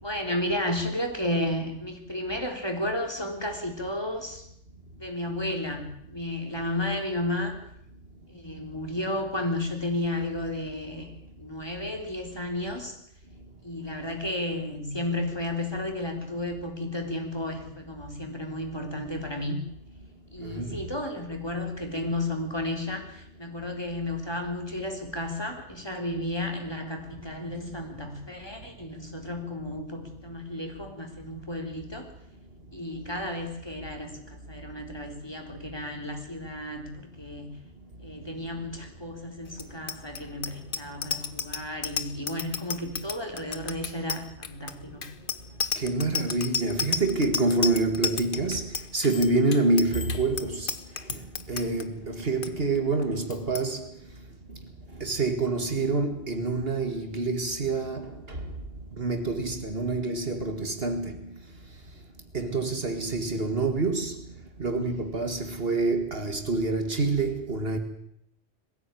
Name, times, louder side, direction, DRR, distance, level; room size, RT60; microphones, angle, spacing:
voice 1, 0.0-4.4 5.0-7.6 8.3-11.1 11.4-13.0 13.6-19.6 20.3-32.1 32.7-37.5 38.0-45.1, left 1 dB, 20° left, 3.8 m, -33 dB
voice 2, 20.4-20.8 45.8-50.7 51.1-51.2 51.5-53.9 55.0-58.5 59.0-61.2 62.3-64.2 64.6-67.8, right 3 dB, 55° right, 2.3 m, -27 dB
Bicycle bell, 39.5-51.8 52.2-52.5 52.7-53.0 53.3-53.6, left 6 dB, 50° left, 1.2 m, -32 dB
21.5 x 15.5 x 9.2 m
omnidirectional pair, 1.2 m